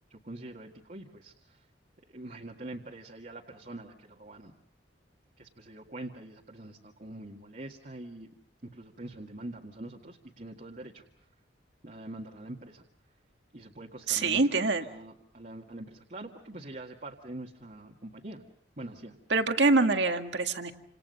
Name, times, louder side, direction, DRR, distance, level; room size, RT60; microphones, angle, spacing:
voice 1, 0.1-1.6 2.1-4.5 5.4-8.3 8.7-11.0 11.8-12.8 13.5-18.4 18.8-19.2, right 1 dB, 40° right, 0 dB, 2.0 m, -44 dB
voice 2, 14.1-14.8 19.3-20.7, right 3 dB, 65° right, 6 dB, 1.9 m, -25 dB
29.5 x 27.0 x 5.5 m, 0.67 s
head